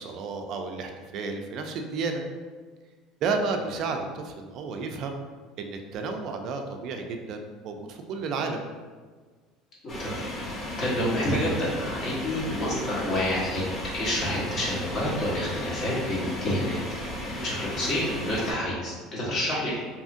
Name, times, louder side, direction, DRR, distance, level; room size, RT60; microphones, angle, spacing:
voice 1, 0.0-2.2 3.2-5.2 5.6-8.6 17.3-17.5, right 4 dB, 55° right, 4 dB, 0.3 m, -32 dB
sound 1, 9.9-18.5, left 1 dB, 25° left, 0.7 m, -35 dB
voice 2, 10.8-13.6 13.9-16.8 17.4-19.8, left 1 dB, 45° left, -7 dB, 1.1 m, -28 dB
2.7 x 2.5 x 2.5 m, 1.5 s
supercardioid pair, 120°, 0 cm